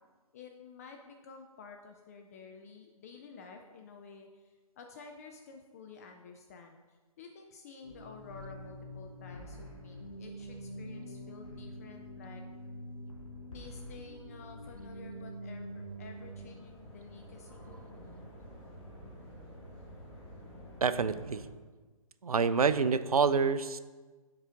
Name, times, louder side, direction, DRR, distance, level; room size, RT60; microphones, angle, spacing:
voice 1, 0.3-6.8 7.2-12.4 13.5-17.7, left 5 dB, 25° left, 3 dB, 0.4 m, -51 dB
sound 1, 7.8-16.4, equal, 70° left, 1.5 m, -45 dB
sound 2, 15.5-21.4, equal, 10° left, 2.0 m, -50 dB
voice 2, 20.8-21.5 22.2-23.8, right 5 dB, 80° right, 14 dB, 0.4 m, -27 dB
7.3 x 4.7 x 3.7 m, 1.3 s
figure-of-eight pair, 130°, 19 cm